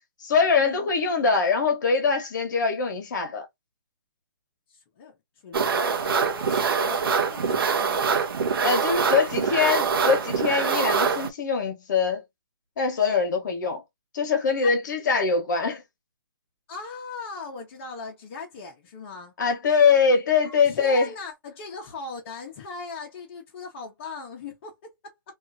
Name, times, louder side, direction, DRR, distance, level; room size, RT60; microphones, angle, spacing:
voice 1, 0.2-3.5 8.6-12.2 12.8-13.8 14.1-15.8 19.4-21.1, left 5 dB, 55° left, 1.1 m, -23 dB
voice 2, 4.7-5.2 5.4-8.3 8.9-9.2 14.6-14.7 16.7-19.3 20.4-24.8 25.0-25.1, left 4 dB, 35° left, 0.8 m, -39 dB
sound 1, 5.5-11.3, right 5 dB, 85° right, 0.7 m, -24 dB
2.8 x 2.4 x 2.6 m
hypercardioid pair, 160°, 12 cm